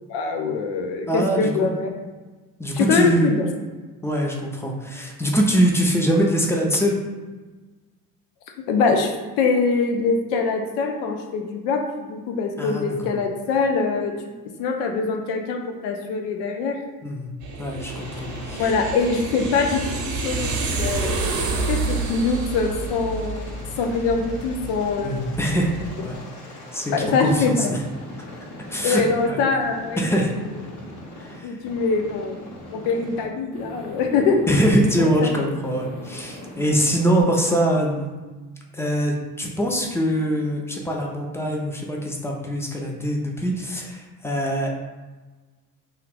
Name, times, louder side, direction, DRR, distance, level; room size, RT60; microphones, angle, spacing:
voice 1, 0.1-1.9 2.7-3.5 8.7-9.1 9.4-14.1 14.6-16.8 18.5-25.2 26.9-27.7 28.8-30.2 31.4-34.4 35.0-35.3, left 4 dB, 60° left, 3 dB, 0.7 m, -23 dB
voice 2, 1.1-1.7 2.6-3.3 4.0-7.0 12.6-13.1 17.0-17.3 17.6-18.7 25.0-26.2 26.7-27.8 28.7-29.0 29.3-29.4 30.0-30.3 31.2-31.6 34.5-38.1 38.7-44.7, equal, 5° left, -1 dB, 0.3 m, -23 dB
sound 1, 17.4-26.0, right 3 dB, 40° right, 0.8 m, -29 dB
Aircraft, 17.8-29.3 29.6-31.4 31.6-33.2 33.5-35.3 35.6-37.2, left 1 dB, 40° left, 1.1 m, -41 dB
2.8 x 2.4 x 3.4 m, 1.3 s
hypercardioid pair, 65°, 47 cm